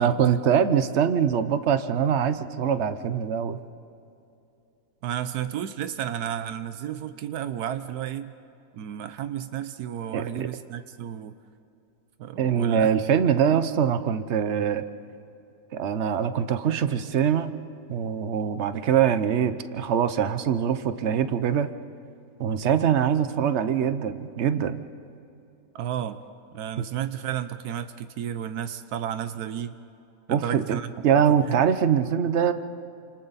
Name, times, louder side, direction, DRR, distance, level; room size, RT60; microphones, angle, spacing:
voice 1, 0.0-3.6 10.1-10.5 12.4-14.8 15.7-17.5 17.9-21.7 22.4-24.8 26.8-26.9 30.3-30.8 31.0-32.5, right 8 dB, 55° right, 11 dB, 1.0 m, -23 dB
voice 2, 5.0-8.3 8.7-11.3 12.2-12.9 13.5-13.6 25.7-26.2 26.5-29.8 30.3-30.9 31.5-31.6, right 10 dB, 80° right, 11 dB, 1.2 m, -32 dB
29.0 x 27.0 x 4.1 m, 2.7 s
omnidirectional pair, 1.6 m